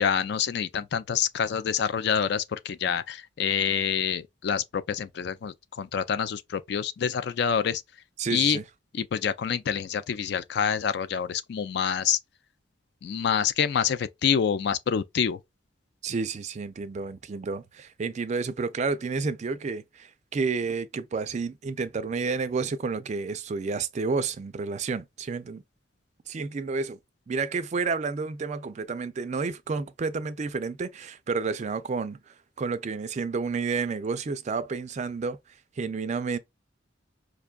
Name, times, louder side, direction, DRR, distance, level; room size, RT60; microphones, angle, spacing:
voice 1, 0.0-7.8 8.3-8.6 8.9-12.2 13.0-15.4, left 7 dB, 60° left, 0.3 m, -27 dB
voice 2, 8.2-8.6 16.0-25.6 26.3-27.0 27.3-35.4 35.8-36.4, right 4 dB, 40° right, 0.4 m, -30 dB
5.0 x 2.3 x 2.3 m
head